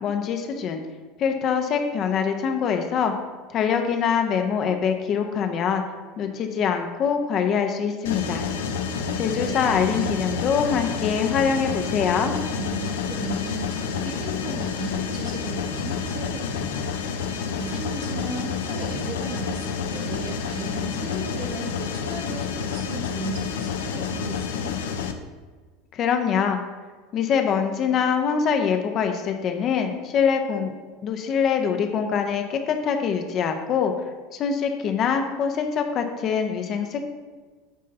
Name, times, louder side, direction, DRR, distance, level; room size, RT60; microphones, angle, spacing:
voice 1, 0.0-0.8 1.2-3.1 3.5-5.8 6.2-8.4 9.2-12.4 25.9-26.6 27.1-30.7 31.0-33.9 34.3-37.1, left 7 dB, 40° left, 5 dB, 0.9 m, -24 dB
Mechanisms, 8.0-25.1, left 6 dB, 70° left, 0.6 m, -29 dB
voice 2, 8.5-10.2 12.6-16.9 17.6-24.7, right 3 dB, 55° right, -1 dB, 1.9 m, -36 dB
9.3 x 3.8 x 5.5 m, 1.4 s
figure-of-eight pair, 75°, 0 cm